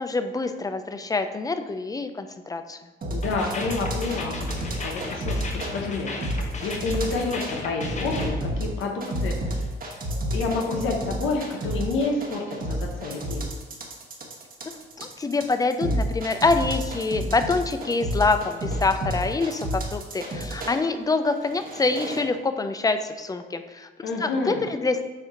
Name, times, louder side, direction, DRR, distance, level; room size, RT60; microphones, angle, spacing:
voice 1, 0.0-2.8 15.0-23.9 24.2-25.0, left 3 dB, 20° left, 9 dB, 0.4 m, -25 dB
sound 1, 3.0-5.7 6.2-7.5 7.8-20.8 21.4-22.2, right 1 dB, 45° right, 1.2 m, -30 dB
voice 2, 3.1-4.4 4.8-5.4 5.7-9.7 10.3-13.5 24.0-24.6, left 3 dB, 80° left, 1 dB, 1.0 m, -29 dB
sound 2, 3.2-8.3, left 2 dB, 35° left, 0.9 m, -35 dB
7.2 x 2.8 x 5.0 m, 1.2 s
cardioid pair, 90°, 20 cm